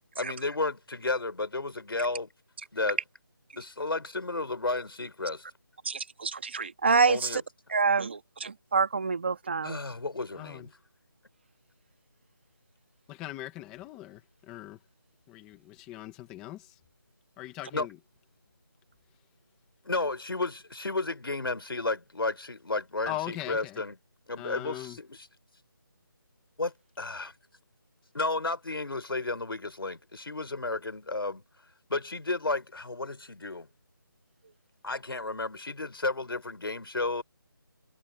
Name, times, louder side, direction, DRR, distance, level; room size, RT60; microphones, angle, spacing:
voice 1, 0.2-2.3 2.7-3.0 3.6-5.4 7.1-7.4 9.6-10.7 17.7-17.9 19.8-23.9 24.3-24.8 26.6-27.3 28.1-31.4 31.9-33.7 34.8-37.2, left 3 dB, 85° left, 4.1 m, -32 dB
voice 2, 5.8-7.4 7.7-9.8, right 5 dB, 30° right, 1.7 m, -27 dB
voice 3, 10.3-10.7 13.1-14.8 15.3-16.8 17.4-18.0 23.1-23.8 24.4-25.0, left 15 dB, 5° left, 1.3 m, -40 dB
figure-of-eight pair, 175°, 12 cm